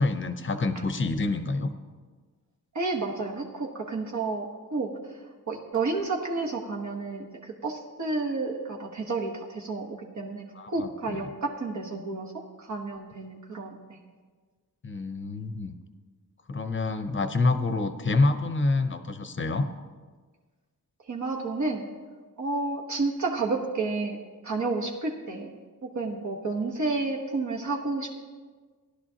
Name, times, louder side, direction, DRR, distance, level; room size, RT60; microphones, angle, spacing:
voice 1, 0.0-1.7 10.5-11.2 14.8-15.7 16.5-19.7, left 3 dB, 35° left, 8 dB, 0.7 m, -27 dB
voice 2, 2.7-5.2 5.5-14.0 21.1-21.8 22.4-24.2 24.4-28.1, right 3 dB, 50° right, -1 dB, 1.2 m, -31 dB
17.0 x 11.5 x 2.8 m, 1.5 s
wide cardioid pair, 140°, 36 cm